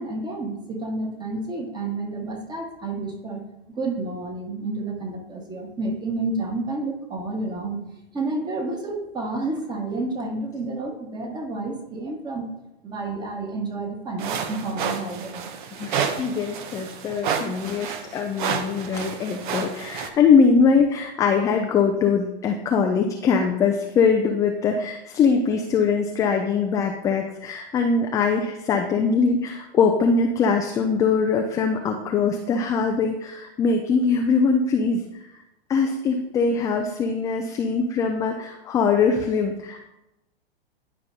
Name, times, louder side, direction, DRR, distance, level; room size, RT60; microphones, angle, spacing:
voice 1, 0.0-3.4 3.7-7.8 8.1-12.5 12.8-15.5, right 2 dB, 15° right, 2 dB, 1.4 m, -30 dB
sound 1, 14.2-20.1, right 7 dB, 55° right, 0.9 m, -30 dB
voice 2, 15.8-35.0 35.7-39.9, left 5 dB, 10° left, 3 dB, 0.3 m, -22 dB
10.5 x 5.3 x 2.7 m, 0.92 s
hypercardioid pair, 115°, 30 cm